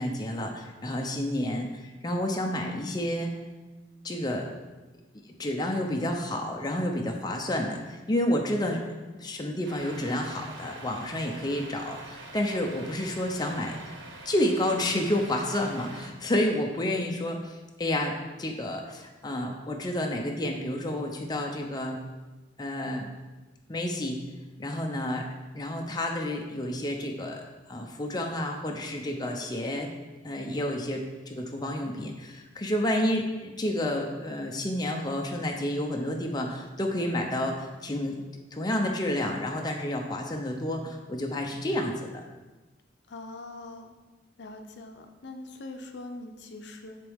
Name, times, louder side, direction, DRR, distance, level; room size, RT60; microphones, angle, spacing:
voice 1, 0.0-3.4 4.0-4.5 5.4-8.8 9.2-13.9 14.3-22.0 22.6-23.1 23.7-24.2 24.6-25.3 25.5-27.4 27.7-29.9 30.2-38.2 38.5-42.2, left 1 dB, 25° left, 1 dB, 0.6 m, -30 dB
Truck, 9.6-16.1, right 2 dB, 80° right, 1.0 m, -45 dB
voice 2, 43.1-43.9 44.4-47.0, left 2 dB, 70° left, 5 dB, 0.6 m, -42 dB
10.0 x 3.6 x 3.5 m, 1.2 s
head